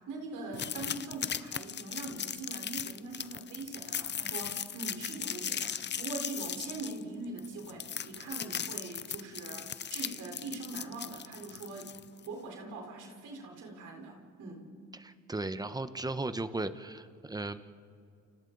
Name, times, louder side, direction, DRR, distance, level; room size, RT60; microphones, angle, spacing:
voice 1, 0.0-12.0 12.3-14.7, right 3 dB, 80° right, 1 dB, 4.4 m, -42 dB
sound 1, 0.5-12.3, left 8 dB, 35° left, 0.6 m, -38 dB
voice 2, 14.9-17.6, right 2 dB, 15° right, 11 dB, 1.1 m, -36 dB
29.5 x 29.0 x 4.1 m, 2.5 s
cardioid pair, 90°, 30 cm